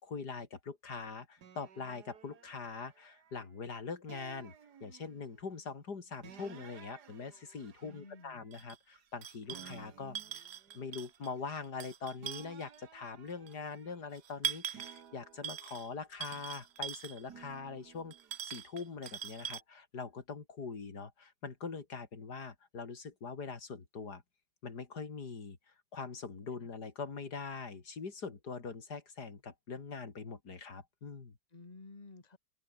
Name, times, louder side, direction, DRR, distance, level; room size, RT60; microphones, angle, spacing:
voice 1, 0.0-4.5 4.8-10.4 10.7-18.1 18.4-24.2 24.6-31.3, left 5 dB, 85° left, 3.3 m, -43 dB
sound 1, 1.4-3.5 4.1-5.4 6.2-9.2 9.5-11.9 12.2-14.2 14.7-16.7 17.3-18.4, right 8 dB, 85° right, 2.1 m, -56 dB
voice 2, 7.8-8.4 9.5-9.7 26.6-26.7 31.5-32.4, left 3 dB, 25° left, 2.1 m, -53 dB
sound 2, 8.5-8.8 9.2-9.8 10.1-11.3 11.6-12.8 13.5-13.6 14.2-15.0 15.4-15.9 16.2-17.3 18.1-19.6, right 9 dB, 50° right, 0.9 m, -41 dB
omnidirectional pair, 1.7 m